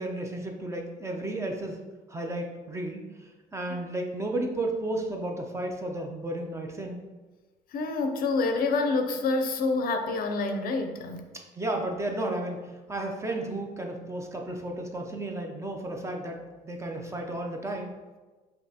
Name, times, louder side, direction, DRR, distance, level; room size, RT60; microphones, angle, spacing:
voice 1, 0.0-1.8 2.1-7.0 11.5-17.9, right 1 dB, 15° right, 2 dB, 0.5 m, -33 dB
voice 2, 7.7-11.3, left 3 dB, 60° left, 6 dB, 0.5 m, -27 dB
5.2 x 2.8 x 2.8 m, 1.3 s
cardioid pair, 110°, 17 cm